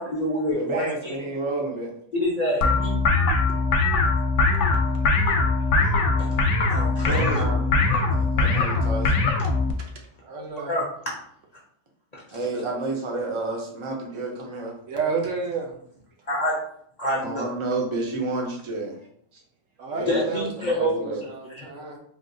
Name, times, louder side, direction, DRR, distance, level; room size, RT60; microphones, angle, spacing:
voice 1, 0.0-1.1 2.1-2.9 6.7-7.4 10.7-10.9 12.1-12.2 16.3-16.6 17.0-17.5 20.1-20.9 21.6-21.7, equal, 40° left, -4 dB, 0.7 m, -26 dB
voice 2, 0.5-1.9 4.9-5.1 5.4-5.7 6.3-9.2 12.3-14.8 17.1-19.0 19.9-20.2 20.6-21.2, right 2 dB, 35° right, -1 dB, 0.5 m, -31 dB
sound 1, 2.6-9.7, left 3 dB, 70° left, 0.9 m, -21 dB
voice 3, 10.2-10.8 14.9-15.7 19.8-22.0, right 4 dB, 75° right, 0 dB, 1.0 m, -30 dB
3.5 x 2.3 x 2.6 m, 0.66 s
omnidirectional pair, 1.3 m